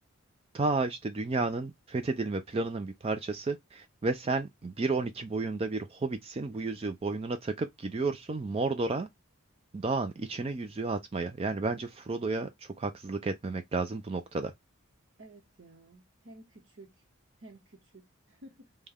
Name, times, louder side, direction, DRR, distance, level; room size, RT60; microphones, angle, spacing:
voice 1, 0.5-9.1 9.7-14.5, right 3 dB, 25° right, 0.3 m, -32 dB
voice 2, 15.2-17.0 17.4-18.7, right 1 dB, 55° right, 0.9 m, -53 dB
5.1 x 2.2 x 3.5 m
head